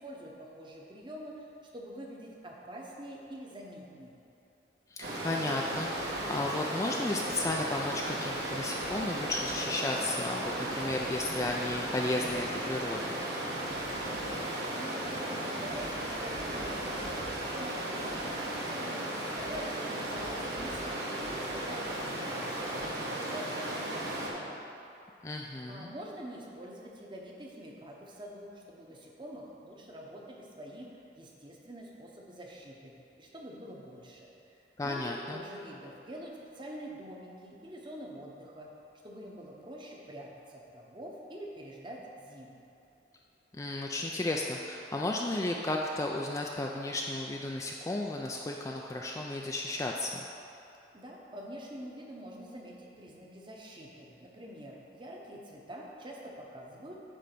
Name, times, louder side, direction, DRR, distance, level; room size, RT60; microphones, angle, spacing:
voice 1, 0.0-4.2 14.7-24.6 25.7-38.7 39.0-42.6 50.9-57.0, equal, 25° right, -1 dB, 0.9 m, -46 dB
voice 2, 4.9-13.2 25.2-25.9 34.8-35.4 43.5-50.2, left 2 dB, 15° left, 0 dB, 0.3 m, -34 dB
Stream, 5.0-24.3, right 1 dB, 65° right, 1.2 m, -35 dB
9.0 x 3.4 x 6.7 m, 2.8 s
head